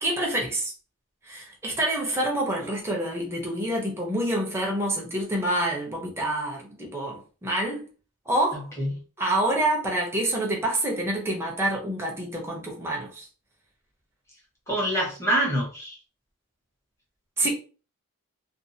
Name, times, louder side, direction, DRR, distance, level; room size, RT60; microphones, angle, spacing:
voice 1, 0.0-0.7 1.3-7.8 8.3-8.7 9.2-13.3 17.4-17.5, right 1 dB, 10° right, 0.6 m, -27 dB
voice 2, 8.5-8.9 14.7-16.0, right 1 dB, 15° left, 1.0 m, -26 dB
2.5 x 2.3 x 2.7 m
head